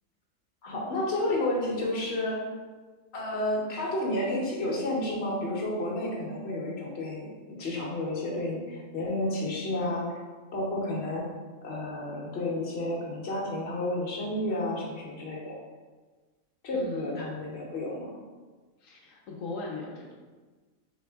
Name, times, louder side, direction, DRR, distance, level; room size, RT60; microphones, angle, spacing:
voice 1, 0.6-2.5 3.1-10.2 10.5-11.2 11.6-15.6 16.6-18.1, left 1 dB, 55° left, -3 dB, 1.1 m, -31 dB
voice 2, 16.7-17.2 18.8-20.1, left 3 dB, 75° left, -1 dB, 1.0 m, -38 dB
4.1 x 2.9 x 3.4 m, 1.4 s
omnidirectional pair, 1.4 m